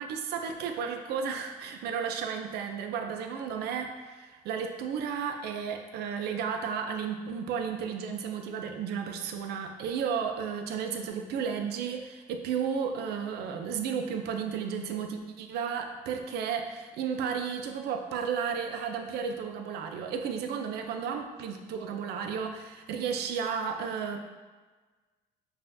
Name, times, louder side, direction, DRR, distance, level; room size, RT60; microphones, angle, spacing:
voice 1, 0.0-24.2, right 7 dB, 70° right, 5 dB, 0.4 m, -33 dB
5.5 x 2.5 x 2.5 m, 1.3 s
cardioid pair, 110°, 17 cm